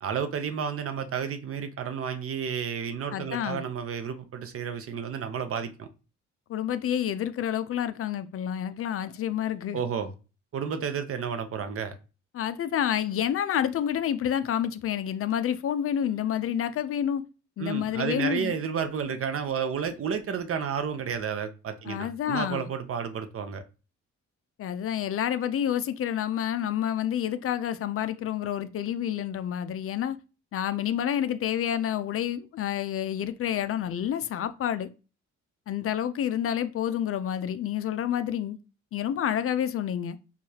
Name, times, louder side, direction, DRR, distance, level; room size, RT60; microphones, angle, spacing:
voice 1, 0.0-5.9 9.7-10.1 10.5-11.9 17.6-23.6, right 7 dB, 50° right, 0.6 m, -31 dB
voice 2, 3.1-3.6 6.5-9.8 12.3-17.2 17.6-18.5 21.9-22.7 24.6-30.2 30.5-34.9 35.7-38.6 38.9-40.2, left 10 dB, 50° left, 0.4 m, -29 dB
4.7 x 2.4 x 2.7 m
cardioid pair, 90°, 30 cm